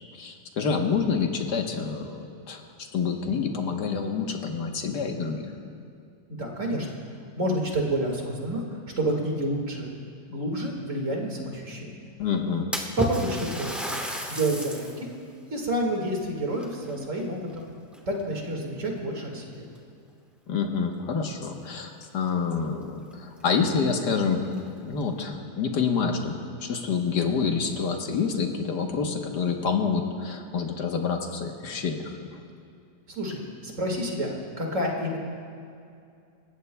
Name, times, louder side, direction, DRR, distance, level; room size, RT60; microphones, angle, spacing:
voice 1, 0.1-2.7 2.9-5.5 12.2-12.7 20.5-24.5 24.8-26.3 26.6-32.4, left 5 dB, 80° left, 3 dB, 1.7 m, -27 dB
voice 2, 6.3-6.9 7.4-8.6 9.0-12.0 13.0-14.0 14.3-15.1 15.5-17.7 18.1-19.7 33.1-35.2, right 1 dB, 50° right, 0 dB, 2.3 m, -29 dB
Splash splatter, 12.7-15.0 15.5-15.6 16.5-17.6 17.9-18.4 19.2-19.3 19.8-19.9 22.0-22.1 22.4-22.5 23.1-23.2 23.6-23.7 24.4-25.0, right 1 dB, ahead, 1.0 m, -33 dB
28.0 x 15.0 x 2.3 m, 2.4 s
omnidirectional pair, 1.8 m